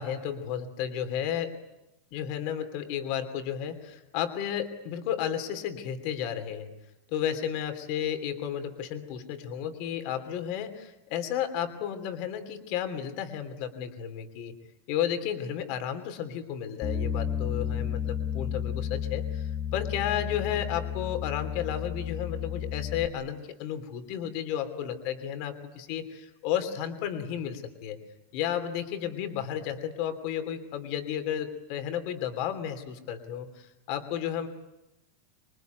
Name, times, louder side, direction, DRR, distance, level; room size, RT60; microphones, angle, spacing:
voice 1, 0.0-1.6 2.1-6.7 7.1-14.5 14.9-28.0 28.3-34.5, left 9 dB, 40° left, 8 dB, 2.9 m, -33 dB
Bass guitar, 16.8-23.1, left 8 dB, 25° left, 1.8 m, -32 dB
26.5 x 23.5 x 9.4 m, 0.92 s
supercardioid pair, 175°, 0 cm